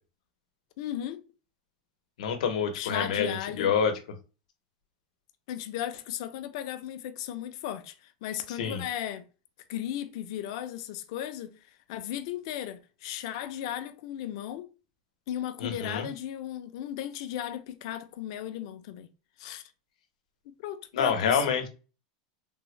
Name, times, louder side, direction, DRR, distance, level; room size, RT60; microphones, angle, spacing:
voice 1, 0.8-1.2 2.7-3.7 5.5-9.2 9.7-14.7 15.3-19.1 19.4-19.6 20.5-21.5, left 11 dB, 50° left, 0.4 m, -36 dB
voice 2, 2.2-3.9 8.6-8.8 15.6-16.1 20.9-21.7, left 6 dB, 90° left, 0.7 m, -27 dB
3.4 x 2.0 x 3.0 m
supercardioid pair, 175°, 4 cm